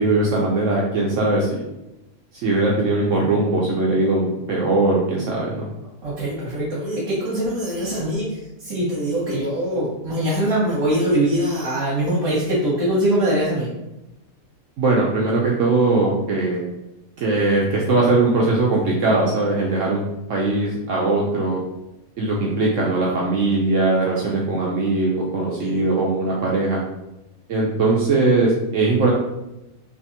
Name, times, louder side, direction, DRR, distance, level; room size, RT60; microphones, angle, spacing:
voice 1, 0.0-1.6 2.4-5.6 14.8-16.6 17.2-21.6 22.2-26.8 27.5-29.1, right 2 dB, 70° right, -3 dB, 0.9 m, -20 dB
voice 2, 6.0-13.7 25.4-25.9, right 1 dB, 85° right, -9 dB, 1.4 m, -23 dB
3.4 x 2.9 x 2.8 m, 0.93 s
omnidirectional pair, 1.5 m